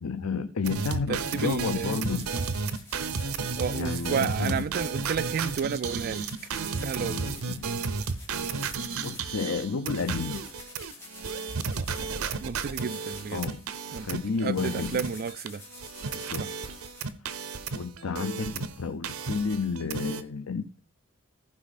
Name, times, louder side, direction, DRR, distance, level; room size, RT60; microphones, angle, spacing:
voice 1, 0.0-2.3 3.7-4.7 7.0-7.7 9.0-10.4 13.3-13.6 13.9-15.0 16.1-16.7 17.7-20.8, left 4 dB, 90° left, 0.6 m, -31 dB
sound 1, 0.6-15.5 15.7-18.8 19.0-20.2, right 5 dB, 85° right, 0.8 m, -33 dB
voice 2, 1.1-2.0 3.6-6.3 6.8-7.3 11.8-13.4 13.9-15.6 16.4-16.5, right 6 dB, 45° right, 0.3 m, -32 dB
sound 2, 1.7-17.1, left 3 dB, 10° left, 2.7 m, -49 dB
14.5 x 5.1 x 4.2 m
head